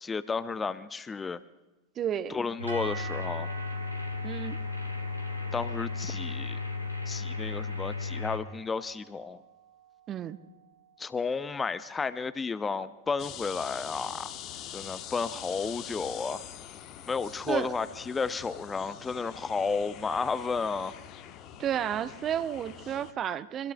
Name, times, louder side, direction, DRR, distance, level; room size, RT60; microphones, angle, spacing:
voice 1, 0.0-1.4 2.3-3.5 5.5-6.6 7.1-9.4 11.0-14.3 14.7-16.4 17.1-20.9, left 4 dB, 15° left, 0.5 m, -32 dB
voice 2, 2.0-2.5 4.2-4.6 10.1-10.4 17.5-17.7 21.6-23.7, right 10 dB, 30° right, 0.7 m, -32 dB
sound 1, 2.6-8.4, left 4 dB, 85° left, 1.8 m, -34 dB
sound 2, 2.7-10.9, right 7 dB, 75° right, 2.0 m, -47 dB
sound 3, 13.2-23.1, left 10 dB, 35° left, 1.0 m, -44 dB
25.0 x 24.5 x 2.2 m
figure-of-eight pair, 90°, 0 cm